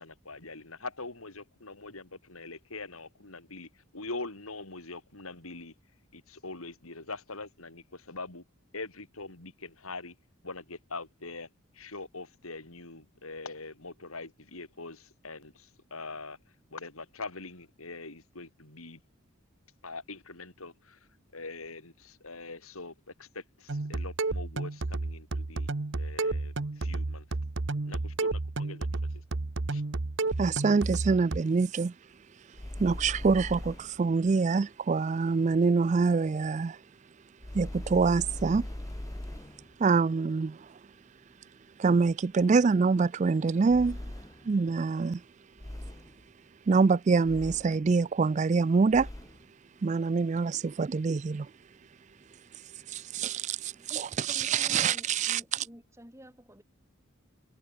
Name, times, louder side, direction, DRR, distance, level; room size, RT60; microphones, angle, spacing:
voice 1, 0.0-5.7 6.1-8.4 8.7-10.2 10.4-11.5 11.7-16.4 16.7-19.0 19.8-21.0 21.3-25.7 26.0-27.3 27.9-28.9 29.1-29.2 29.7-29.8, left 3 dB, 80° left, 4.7 m, -43 dB
sound 1, 23.7-31.4, right 3 dB, 55° right, 0.9 m, -32 dB
voice 2, 30.4-31.9 32.8-36.8 37.5-38.7 39.8-40.6 41.8-44.0 44.5-45.2 46.7-49.1 49.8-51.5 52.9-55.4, right 4 dB, 35° right, 0.3 m, -25 dB
sound 2, 32.5-34.1 37.4-39.7 43.7-44.6 45.6-46.2 47.2-47.9 48.9-49.4, left 1 dB, 15° left, 0.7 m, -40 dB
voice 3, 53.8-56.6, equal, 15° right, 5.1 m, -50 dB
head